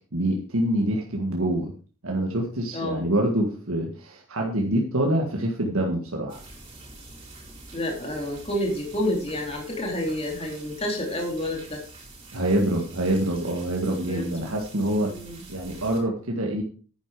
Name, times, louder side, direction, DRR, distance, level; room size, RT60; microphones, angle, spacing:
voice 1, 0.1-1.7 2.0-6.4 12.3-15.1 15.5-16.6, right 1 dB, 75° right, 0 dB, 1.8 m, -25 dB
voice 2, 2.7-3.1 7.7-11.8 14.0-14.3 15.0-15.4, left 1 dB, 25° left, 1 dB, 2.9 m, -29 dB
sound 1, 6.3-16.0, right 2 dB, 25° right, 5.8 m, -46 dB
10.5 x 10.0 x 4.9 m, 0.39 s
head